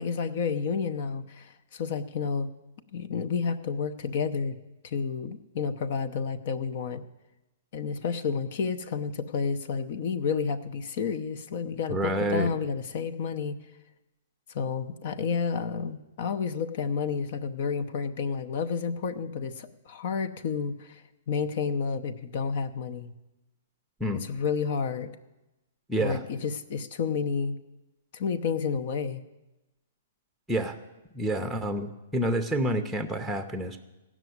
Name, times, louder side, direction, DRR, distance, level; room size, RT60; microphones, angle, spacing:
voice 1, 0.0-2.5 2.9-4.6 4.8-7.0 7.7-13.6 14.5-21.0 21.3-23.1 24.2-25.1 26.0-27.6 28.1-29.2, left 5 dB, 50° left, 10 dB, 0.8 m, -30 dB
voice 2, 11.9-12.5 24.0-24.2 25.9-26.2 30.5-30.8 31.1-33.8, right 1 dB, ahead, 7 dB, 0.7 m, -28 dB
15.0 x 6.2 x 9.4 m, 1.0 s
hypercardioid pair, 150°, 0 cm